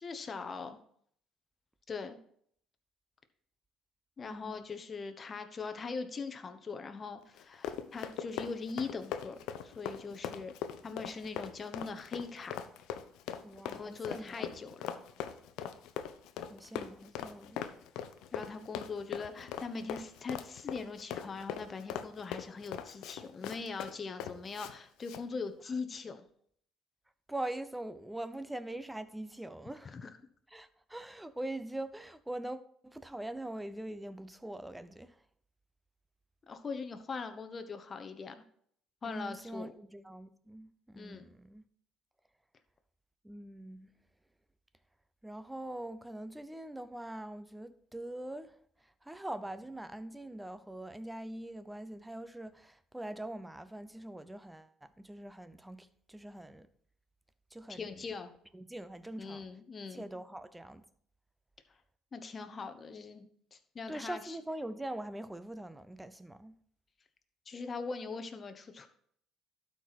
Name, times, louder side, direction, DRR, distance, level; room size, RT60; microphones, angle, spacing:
voice 1, 0.0-0.8 1.9-2.2 4.2-9.4 9.6-10.5 10.8-12.5 13.7-14.8 18.3-26.2 29.9-30.1 36.5-38.3 39.0-39.7 40.9-41.3 57.7-58.3 59.2-60.1 62.1-64.4 67.5-68.9, left 4 dB, 35° left, 1.0 m, -41 dB
voice 2, 4.2-4.6 13.4-14.5 16.5-17.6 27.3-30.0 30.5-35.2 39.1-41.6 43.2-43.9 45.2-56.7 57.5-58.2 58.5-59.5 59.9-60.9 63.9-66.6, right 1 dB, 5° right, 0.6 m, -43 dB
Run, 7.3-24.7 25.0-25.2, left 9 dB, 80° left, 0.7 m, -41 dB
12.0 x 4.8 x 4.1 m
cardioid pair, 100°, 0 cm